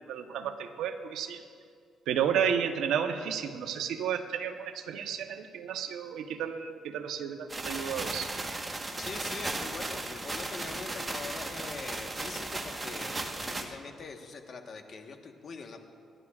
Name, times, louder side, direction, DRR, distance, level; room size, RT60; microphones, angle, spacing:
voice 1, 0.0-1.4 2.1-8.3, right 8 dB, 85° right, 6 dB, 0.9 m, -32 dB
sound 1, 7.5-13.7, right 2 dB, 25° right, 1.2 m, -36 dB
voice 2, 9.0-15.8, left 4 dB, 50° left, 4 dB, 1.2 m, -43 dB
28.0 x 11.0 x 2.4 m, 2.2 s
cardioid pair, 90°, 0 cm